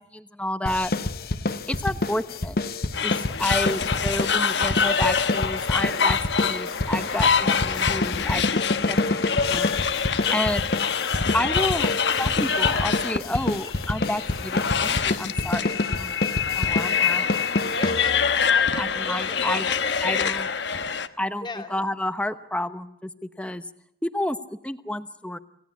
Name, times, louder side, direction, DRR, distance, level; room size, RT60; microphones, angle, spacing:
voice 1, 0.1-0.9 1.7-2.5 3.0-8.6 8.9-9.2 9.5-9.8 10.3-10.6 11.3-16.1 16.6-17.3 18.8-19.7 20.0-20.5 21.2-23.6 24.0-24.4 24.6-25.4, left 1 dB, 5° left, 11 dB, 0.9 m, -30 dB
sound 1, 0.7-18.4, left 2 dB, 55° left, 0.9 m, -28 dB
sound 2, 2.9-21.1, left 6 dB, 80° left, 1.1 m, -25 dB
voice 2, 17.7-20.4 21.4-21.7, left 2 dB, 25° left, 6 dB, 2.5 m, -37 dB
27.0 x 17.0 x 8.5 m, 0.82 s
head